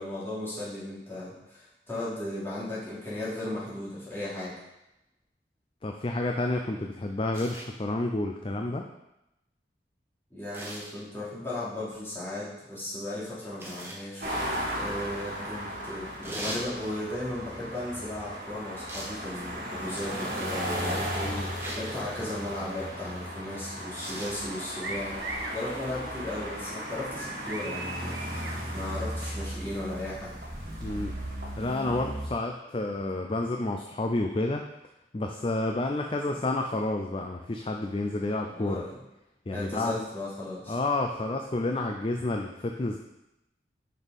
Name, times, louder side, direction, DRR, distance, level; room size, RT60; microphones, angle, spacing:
voice 1, 0.0-4.5 10.3-30.4 38.4-38.9 39.5-40.8, left 1 dB, 15° left, -10 dB, 3.1 m, -36 dB
voice 2, 5.8-8.9 21.2-21.5 30.8-31.2 31.6-34.6 35.1-38.8 39.5-40.0 40.7-43.0, left 2 dB, 30° left, 3 dB, 0.4 m, -30 dB
sound 1, 7.3-7.7 10.5-11.0 13.6-14.0 16.2-16.7 18.9-19.2 20.0-20.4 21.6-21.9 23.9-24.4 25.8-26.0, right 1 dB, 15° right, 1.3 m, -39 dB
sound 2, 14.2-32.3, equal, 55° right, 2.1 m, -36 dB
sound 3, 24.8-25.6 27.1-28.6, right 3 dB, 75° right, 1.3 m, -38 dB
6.4 x 5.4 x 5.3 m, 0.91 s
head